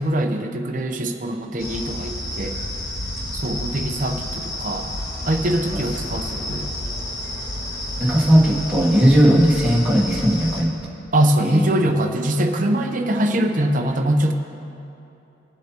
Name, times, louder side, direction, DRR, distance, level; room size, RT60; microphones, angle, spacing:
voice 1, 0.0-2.5 3.4-4.9 5.3-6.7 11.1-14.3, right 1 dB, 40° right, 4 dB, 0.7 m, -22 dB
sound 1, 1.6-10.6, left 1 dB, 90° left, 1.9 m, -30 dB
voice 2, 8.0-10.7 11.4-11.7, equal, 5° right, -6 dB, 1.4 m, -17 dB
22.5 x 7.7 x 2.9 m, 2.8 s
head